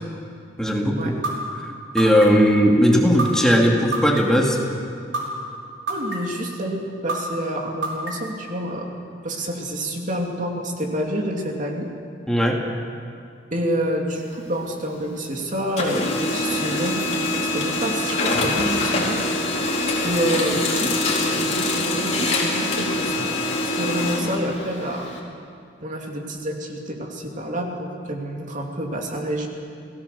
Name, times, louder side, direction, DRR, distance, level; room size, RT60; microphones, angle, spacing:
voice 1, 0.6-1.2 1.6-4.6 12.3-12.7, equal, 5° left, -1 dB, 2.5 m, -18 dB
sound 1, 1.2-1.3 2.0-2.5 3.2-3.3 3.9-4.4 5.1-5.2 5.9-6.4 7.1-7.2 7.8-8.3, right 3 dB, 80° right, 5.8 m, -26 dB
voice 2, 5.9-9.0 9.2-11.9 13.5-19.2 20.0-23.3 23.7-25.1 25.8-29.5, equal, 45° right, 1 dB, 2.8 m, -28 dB
Printer, 14.1-15.3 15.6-25.2, left 2 dB, 40° left, 4.5 m, -24 dB
29.5 x 18.5 x 7.0 m, 2.5 s
head